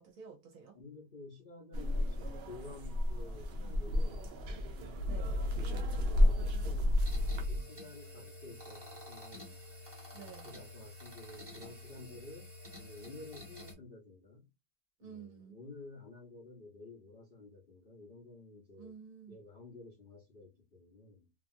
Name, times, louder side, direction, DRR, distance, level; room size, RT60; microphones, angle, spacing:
voice 1, 0.0-0.7 5.1-5.5 10.1-10.6 15.0-15.6 18.8-19.4, right 7 dB, 60° right, 1.0 m, -51 dB
voice 2, 0.7-4.3 5.2-7.0 7.5-9.6 10.1-12.5 12.8-14.5 15.0-18.9 19.3-21.3, left 2 dB, 45° left, 0.7 m, -52 dB
sound 1, 1.7-7.4, left 1 dB, 80° right, 0.5 m, -32 dB
sound 2, 5.0-7.6, left 1 dB, 80° left, 1.2 m, -34 dB
sound 3, 7.0-13.7, left 1 dB, 20° right, 0.9 m, -50 dB
2.9 x 2.4 x 2.5 m
omnidirectional pair, 1.8 m